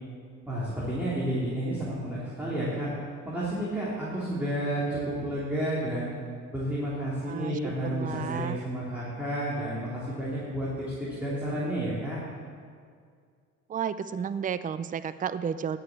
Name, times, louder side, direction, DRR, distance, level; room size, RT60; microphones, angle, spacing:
voice 1, 0.5-2.9 3.2-6.1 6.5-12.2, right 1 dB, 5° right, -9 dB, 3.1 m, -31 dB
voice 2, 7.3-8.6 13.7-15.8, right 7 dB, 25° right, 13 dB, 0.4 m, -32 dB
11.0 x 6.7 x 8.4 m, 2.1 s
cardioid pair, 90°, 30 cm